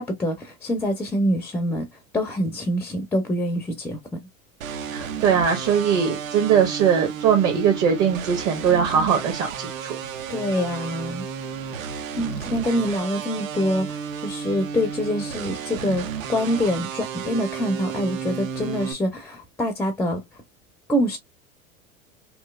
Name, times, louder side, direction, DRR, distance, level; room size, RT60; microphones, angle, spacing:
voice 1, 0.0-1.9 2.1-4.0 10.3-11.3 12.2-20.2 20.9-21.2, equal, 5° left, 0.4 m, -25 dB
sound 1, 4.6-18.9, right 7 dB, 70° right, 0.7 m, -33 dB
voice 2, 4.9-9.9, right 7 dB, 40° right, 1.0 m, -21 dB
3.0 x 2.8 x 2.2 m
hypercardioid pair, 90°, 41 cm